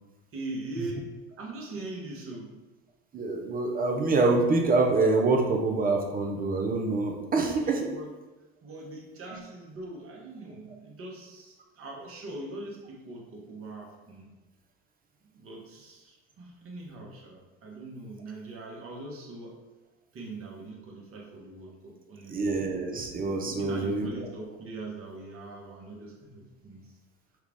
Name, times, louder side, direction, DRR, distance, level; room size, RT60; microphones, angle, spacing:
voice 1, 0.3-2.5 7.6-8.1 8.6-14.3 15.3-19.6 20.1-22.6 23.4-26.9, right 2 dB, 40° right, -1 dB, 1.2 m, -41 dB
voice 2, 3.1-7.9 22.3-24.3, right 3 dB, 25° right, 2 dB, 0.7 m, -26 dB
5.7 x 2.4 x 3.4 m, 1.1 s
supercardioid pair, 90°, 33 cm